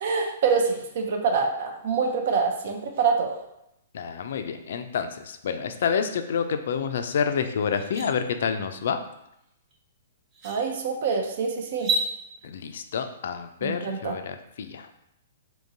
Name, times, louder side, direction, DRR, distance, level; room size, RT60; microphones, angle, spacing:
voice 1, 0.0-3.4 10.4-11.9 13.6-14.2, right 5 dB, 60° right, 3 dB, 0.6 m, -25 dB
voice 2, 3.9-9.0 12.4-14.9, left 6 dB, 65° left, 8 dB, 0.3 m, -28 dB
sound 1, 7.1-7.2 7.6-8.1 9.7-9.8 10.3-10.6 11.7-12.1, right 2 dB, 40° right, 0.9 m, -28 dB
3.7 x 2.8 x 2.6 m, 0.83 s
hypercardioid pair, 120°, 0 cm